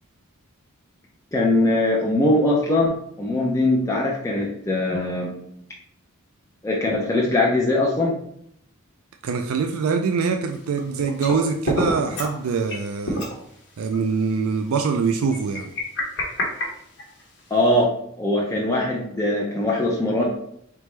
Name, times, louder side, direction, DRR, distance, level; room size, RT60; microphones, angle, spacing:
voice 1, 1.3-5.4 6.6-8.2 17.5-17.9 18.2-20.2, left 1 dB, 15° left, -3 dB, 0.5 m, -21 dB
voice 2, 9.2-13.2 13.8-15.7, right 5 dB, 70° right, 6 dB, 0.3 m, -24 dB
sound 1, 10.5-11.4 11.6-12.3 12.7-12.8 13.0-13.4 13.9-14.0 15.3-17.4, left 1 dB, 55° left, 1.1 m, -27 dB
4.0 x 3.4 x 3.2 m, 0.70 s
head